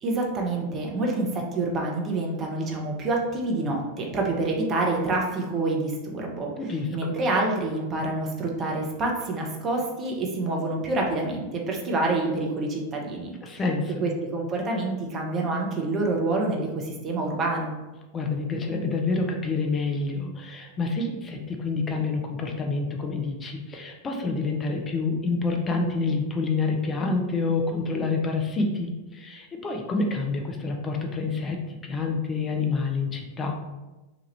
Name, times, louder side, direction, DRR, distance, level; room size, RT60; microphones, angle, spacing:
voice 1, 0.0-6.5 6.9-13.3 14.0-17.7, right 2 dB, 25° right, 0 dB, 0.7 m, -27 dB
voice 2, 6.6-7.1 13.4-14.0 18.1-33.6, left 3 dB, 20° left, 2 dB, 0.5 m, -28 dB
2.9 x 2.3 x 3.2 m, 1.1 s
figure-of-eight pair, 90°, 0 cm